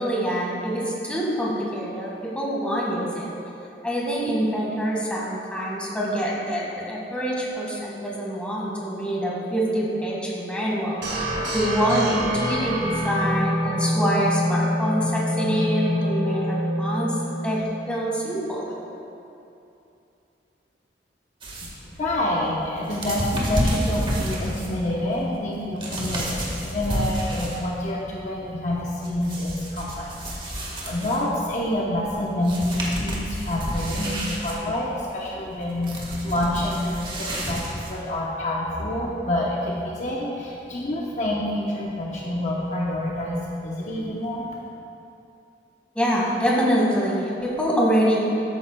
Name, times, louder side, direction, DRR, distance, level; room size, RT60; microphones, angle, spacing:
voice 1, 0.0-3.3 3.8-11.2 11.5-17.2 17.4-18.7 45.9-48.2, equal, 5° left, -5 dB, 1.8 m, -25 dB
sound 1, 11.0-17.9, equal, 75° right, 2.1 m, -26 dB
sound 2, 21.4-27.8 28.1-31.4 32.1-32.2 32.4-38.2, equal, 30° right, 1.6 m, -30 dB
voice 2, 21.6-30.1 30.4-44.6, left 1 dB, 45° left, -4 dB, 0.9 m, -27 dB
13.5 x 9.6 x 2.3 m, 2.7 s
head